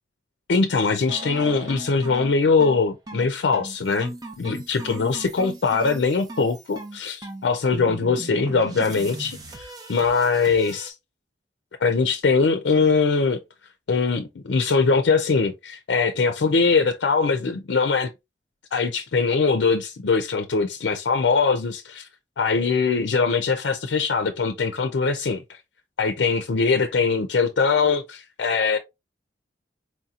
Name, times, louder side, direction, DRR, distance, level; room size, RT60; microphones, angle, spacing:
voice 1, 0.5-10.9 11.8-13.4 13.9-18.1 18.7-22.1 22.4-25.6 26.0-28.8, left 4 dB, 90° left, 0.5 m, -22 dB
sound 1, 1.1-10.9, right 2 dB, 20° right, 0.6 m, -38 dB
4.4 x 2.8 x 2.4 m
head